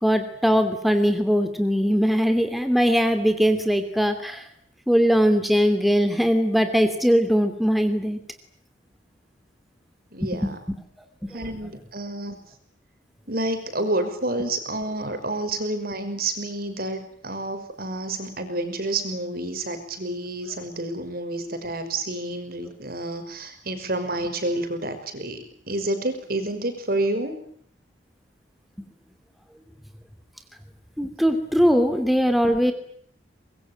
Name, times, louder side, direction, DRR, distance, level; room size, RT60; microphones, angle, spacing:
voice 1, 0.0-4.4 4.9-8.2 10.2-10.8 11.2-11.4 31.0-32.7, equal, ahead, 7 dB, 2.8 m, -21 dB
voice 2, 10.1-10.6 11.3-12.4 13.3-27.4, right 2 dB, 55° right, 9 dB, 5.7 m, -29 dB
25.0 x 22.5 x 9.1 m, 0.62 s
head